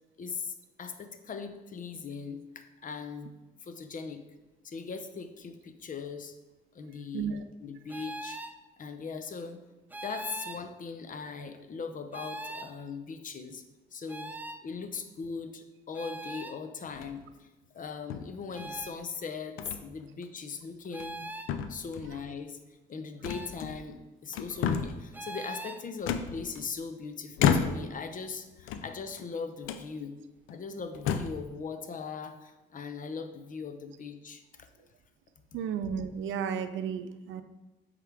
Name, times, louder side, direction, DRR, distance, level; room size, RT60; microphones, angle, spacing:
voice 1, 0.2-3.3 3.6-4.2 4.6-6.4 6.7-7.3 7.6-8.4 8.8-9.6 10.0-13.6 13.9-14.4 14.6-17.5 17.7-21.2 21.7-22.6 22.9-30.2 30.5-34.7, left 5 dB, 45° left, 8 dB, 0.6 m, -39 dB
sound 1, 7.9-8.6 9.9-10.6 12.1-12.7 14.1-14.6 15.9-16.6 18.5-19.0 20.9-21.5 23.2-23.6 25.1-25.8, right 2 dB, 10° right, 0.4 m, -41 dB
sound 2, 16.9-17.3 18.1-18.8 19.6-19.8 20.2-20.4 20.9-21.2 21.5-22.2 23.2-24.0 24.3-25.1 26.1-26.9 27.4-28.0 28.6-29.3 29.6-29.9 30.5-30.6 30.9-31.5, left 7 dB, 85° left, 0.4 m, -31 dB
voice 2, 35.5-37.4, right 7 dB, 75° right, 10 dB, 0.5 m, -33 dB
7.8 x 3.8 x 3.4 m, 1.1 s
cardioid pair, 90°, 20 cm